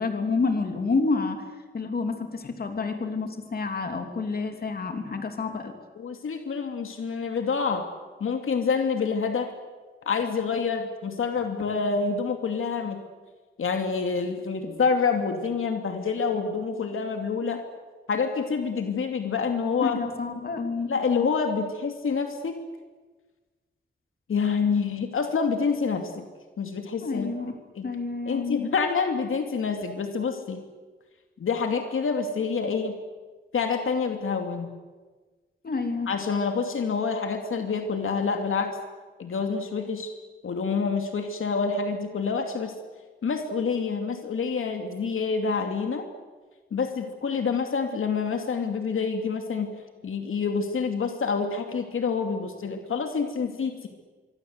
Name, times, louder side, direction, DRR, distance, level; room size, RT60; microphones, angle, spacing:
voice 1, 0.0-1.4 1.7-5.7 19.8-20.9 27.0-27.5 27.8-28.7 35.6-36.1, left 4 dB, 50° left, 5 dB, 3.0 m, -29 dB
voice 2, 6.0-7.8 8.2-9.5 10.1-13.0 13.6-17.6 18.1-20.0 20.9-22.6 24.3-26.3 26.6-27.3 27.7-27.9 28.3-30.6 31.4-33.0 33.5-34.7 36.1-38.7 39.2-40.1 40.4-42.7 43.2-46.1 46.7-49.7 50.0-53.9, left 5 dB, 85° left, 5 dB, 2.6 m, -27 dB
25.5 x 24.0 x 8.1 m, 1.3 s
wide cardioid pair, 175°, 21 cm